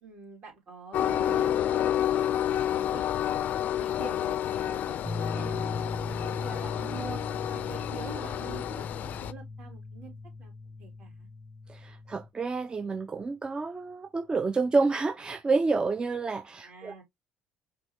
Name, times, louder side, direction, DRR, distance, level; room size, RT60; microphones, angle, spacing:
voice 1, 0.0-5.0 5.3-7.2 7.5-10.5 10.8-11.3 16.6-17.0, right 5 dB, 55° right, 2.9 m, -46 dB
Train, 0.9-9.3, left 11 dB, 55° left, 0.4 m, -29 dB
sound 1, 5.0-12.3, left 3 dB, 5° right, 0.9 m, -38 dB
voice 2, 11.7-16.9, right 4 dB, 25° right, 0.5 m, -29 dB
5.3 x 3.0 x 2.8 m
supercardioid pair, 75°, 3 cm